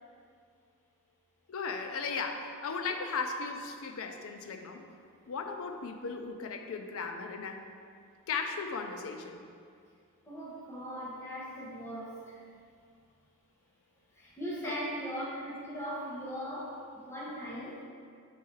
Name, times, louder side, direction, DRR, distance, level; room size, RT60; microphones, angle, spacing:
voice 1, 1.5-4.8 5.3-7.6 8.3-9.4 14.6-14.8, left 4 dB, 65° left, 5 dB, 0.5 m, -36 dB
voice 2, 10.3-12.4 14.2-17.8, equal, 10° left, -7 dB, 1.1 m, -39 dB
4.6 x 4.5 x 4.6 m, 2.2 s
head